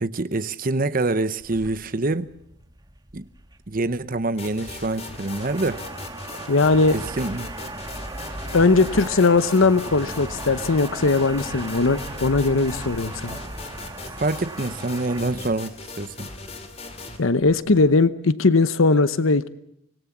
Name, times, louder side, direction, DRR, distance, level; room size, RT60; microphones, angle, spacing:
voice 1, 0.0-2.3 3.1-3.2 3.7-5.8 6.9-7.5 14.2-16.3, right 2 dB, 45° right, 0.8 m, -26 dB
sound 1, 1.4-18.0, right 2 dB, 20° right, 1.7 m, -38 dB
sound 2, 4.4-17.2, left 3 dB, 30° left, 2.6 m, -39 dB
voice 2, 6.5-6.9 8.5-13.4 17.2-19.5, left 3 dB, 75° left, 0.9 m, -19 dB
25.0 x 18.5 x 7.2 m
head